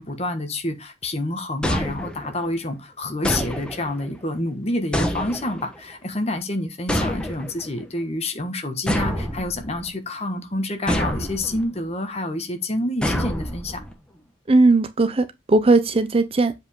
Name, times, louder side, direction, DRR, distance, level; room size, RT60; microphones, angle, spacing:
voice 1, 0.0-13.8, left 1 dB, 35° left, 1.3 m, -28 dB
sound 1, 1.6-2.5 3.2-4.1 4.9-5.8 6.9-7.7 8.9-9.9 10.9-11.6 13.0-13.9, equal, 5° left, 1.2 m, -26 dB
voice 2, 14.5-16.5, right 3 dB, 30° right, 0.5 m, -18 dB
7.8 x 4.8 x 3.7 m
head